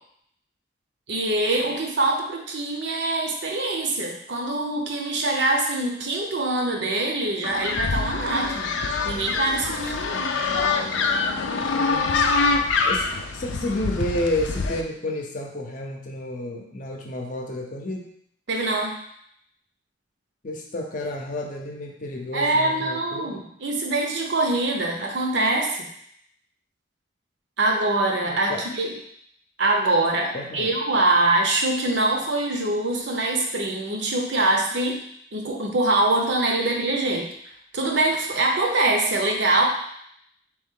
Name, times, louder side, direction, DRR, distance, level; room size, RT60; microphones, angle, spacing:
voice 1, 1.1-8.7 9.0-10.4 18.5-19.0 22.3-25.9 27.6-29.0 29.6-35.0 35.3-37.3 37.7-39.7, right 2 dB, 70° right, 1 dB, 0.7 m, -24 dB
sound 1, 7.4-14.8, left 4 dB, 85° left, 0.4 m, -25 dB
voice 2, 11.8-12.2 12.8-18.1 20.4-23.5 28.2-28.6 30.3-30.8, left 1 dB, 45° left, 1 dB, 0.6 m, -31 dB
3.7 x 3.0 x 3.7 m, 0.70 s
head